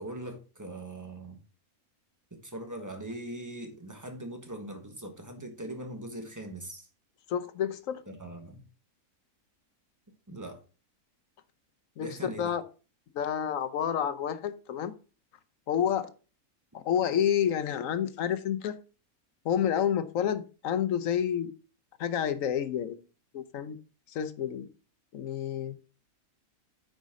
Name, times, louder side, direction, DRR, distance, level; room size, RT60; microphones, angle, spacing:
voice 1, 0.0-1.4 2.4-6.9 8.1-8.6 10.3-10.6 12.0-12.5, right 1 dB, 15° right, 1.2 m, -41 dB
voice 2, 7.3-8.0 12.0-12.6 13.1-14.9 15.7-16.1 16.7-18.8 19.4-21.5 22.0-23.0 23.3-23.8 24.1-24.7 25.1-25.7, left 9 dB, 65° left, 1.1 m, -29 dB
9.1 x 5.2 x 3.7 m
omnidirectional pair, 1.6 m